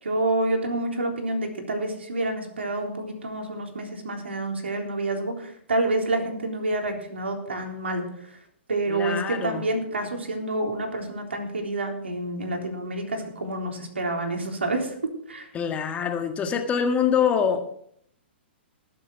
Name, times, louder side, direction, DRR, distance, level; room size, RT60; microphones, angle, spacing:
voice 1, 0.0-8.0 8.7-14.9 15.3-15.5, right 2 dB, 85° right, 2 dB, 3.7 m, -28 dB
voice 2, 8.9-9.7 15.5-17.8, left 7 dB, 20° left, 5 dB, 1.8 m, -25 dB
19.5 x 7.8 x 4.7 m, 0.66 s
hypercardioid pair, 120°, 6 cm